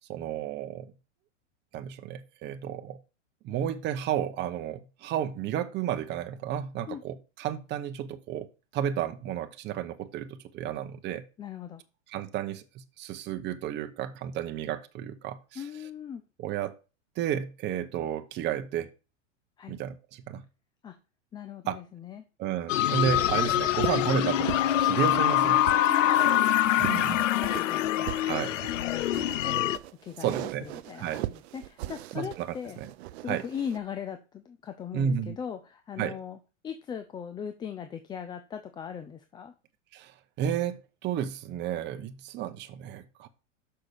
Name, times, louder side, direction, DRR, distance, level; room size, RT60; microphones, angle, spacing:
voice 1, 0.1-0.9 1.7-3.0 3.4-8.5 8.7-11.2 12.1-15.6 16.4-16.7 17.2-18.9 19.7-20.4 21.7-21.8 22.4-25.7 26.8-27.2 28.3-28.5 30.2-30.7 31.0-31.2 32.1-32.5 32.8-32.9 33.3-33.4 34.9-35.4 36.0-36.2 39.9-43.3, right 9 dB, 30° right, 1.0 m, -32 dB
voice 2, 11.4-11.8 15.6-16.2 19.6-19.8 20.8-21.0 21.3-22.2 25.9-26.4 26.7-28.4 28.7-29.7 30.0-32.8 33.2-36.4 36.6-39.5, left 8 dB, 10° left, 0.4 m, -39 dB
sound 1, 22.7-29.8, left 12 dB, 80° left, 0.8 m, -25 dB
sound 2, 23.1-33.8, right 16 dB, 60° right, 0.6 m, -39 dB
6.0 x 5.7 x 6.8 m
supercardioid pair, 135°, 37 cm